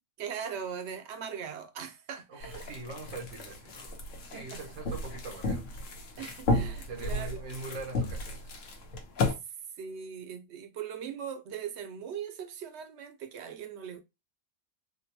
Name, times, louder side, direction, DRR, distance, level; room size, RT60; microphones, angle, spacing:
voice 1, 0.2-2.6 4.3-4.6 6.2-7.4 9.8-14.0, right 7 dB, 70° right, 0.8 m, -40 dB
voice 2, 2.3-4.0 4.3-5.7 6.8-8.5, right 3 dB, 90° right, 1.3 m, -42 dB
sound 1, 2.4-9.3, left 2 dB, 90° left, 1.1 m, -33 dB
3.6 x 2.1 x 2.8 m
omnidirectional pair, 1.3 m